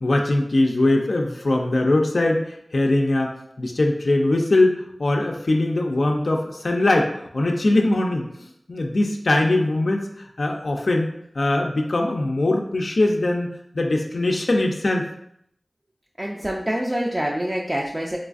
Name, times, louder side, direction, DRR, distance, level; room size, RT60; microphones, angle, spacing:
voice 1, 0.0-15.1, left 2 dB, 80° left, 1 dB, 0.3 m, -21 dB
voice 2, 16.2-18.2, right 1 dB, 30° right, -2 dB, 0.4 m, -26 dB
3.9 x 2.3 x 2.4 m, 0.72 s
wide cardioid pair, 60°, 0 cm